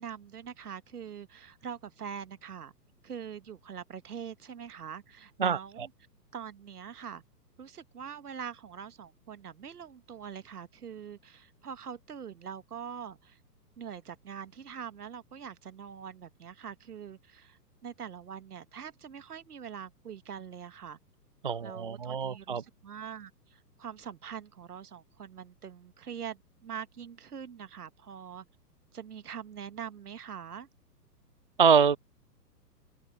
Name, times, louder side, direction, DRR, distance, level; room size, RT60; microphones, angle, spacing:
voice 1, 0.0-2.7 3.0-5.9 6.3-7.2 7.6-13.4 13.8-21.0 21.6-28.4 28.9-30.7, right 8 dB, 65° right, 1.5 m, -43 dB
voice 2, 5.4-5.9 21.4-22.6 31.6-32.0, right 6 dB, 35° right, 0.4 m, -25 dB
open air
figure-of-eight pair, 120°, 49 cm